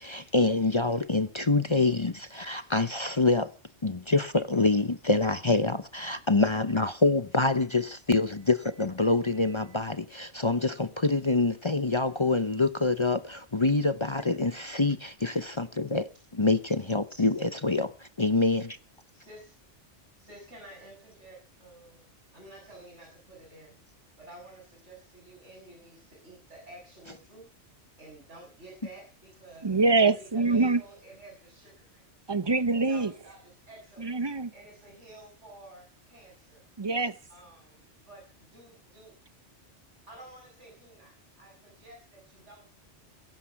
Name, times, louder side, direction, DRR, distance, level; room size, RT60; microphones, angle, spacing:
voice 1, 0.1-2.1 2.4-3.5 3.8-13.2 13.5-15.0 15.2-16.0 16.4-17.9 18.2-18.6, left 3 dB, 30° left, 0.8 m, -25 dB
voice 2, 9.3-9.8 17.2-17.5 19.1-19.6 20.2-23.8 24.2-27.5 28.0-29.7 30.0-32.0 32.9-34.2 34.5-36.6 37.3-39.1 40.1-42.7, right 2 dB, 75° right, 7.7 m, -51 dB
voice 3, 29.6-30.8 32.3-33.1 34.0-34.5 36.8-37.2, right 3 dB, 25° right, 0.7 m, -24 dB
21.5 x 11.5 x 5.9 m
omnidirectional pair, 1.2 m